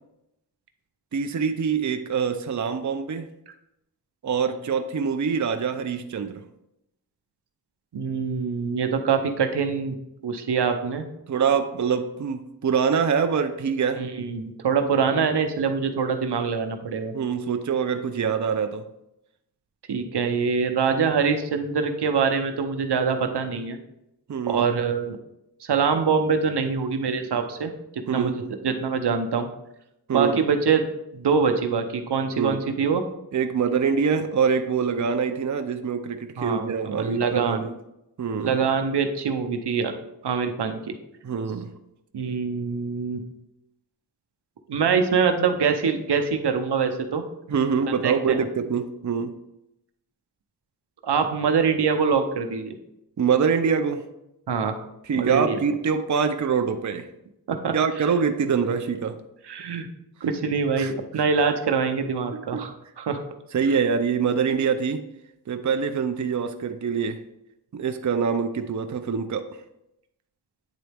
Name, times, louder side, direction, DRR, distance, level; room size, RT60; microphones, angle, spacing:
voice 1, 1.1-3.3 4.2-6.4 11.3-14.0 17.1-18.8 24.3-24.7 28.1-28.5 30.1-30.4 32.3-32.6 33.3-37.7 38.2-38.6 41.2-41.7 47.5-49.3 53.2-54.0 55.0-57.1 57.7-59.2 60.8-60.9 62.3-62.6 63.5-65.0 65.5-67.2 67.7-69.5, right 6 dB, 45° right, 8 dB, 0.6 m, -24 dB
voice 2, 7.9-9.9 10.2-11.0 14.0-17.1 19.9-23.8 24.5-25.2 25.6-27.7 28.1-29.5 30.1-30.9 31.1-33.0 36.4-37.6 38.5-39.9 40.2-40.9 42.1-43.2 44.7-47.2 47.9-48.4 51.0-52.7 54.5-54.7 55.1-55.6 57.6-57.7 59.5-59.9 60.2-63.2, right 5 dB, 80° right, 6 dB, 0.8 m, -24 dB
9.1 x 4.0 x 3.4 m, 0.84 s
wide cardioid pair, 55°, 39 cm